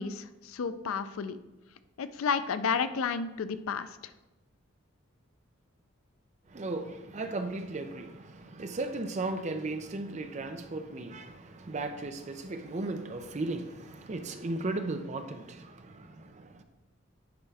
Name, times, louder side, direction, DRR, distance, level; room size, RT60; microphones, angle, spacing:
voice 1, 0.0-1.4 2.0-3.9, left 6 dB, 80° left, 0.4 m, -31 dB
voice 2, 6.5-16.6, right 2 dB, 35° right, 0.5 m, -36 dB
9.6 x 3.6 x 3.4 m
head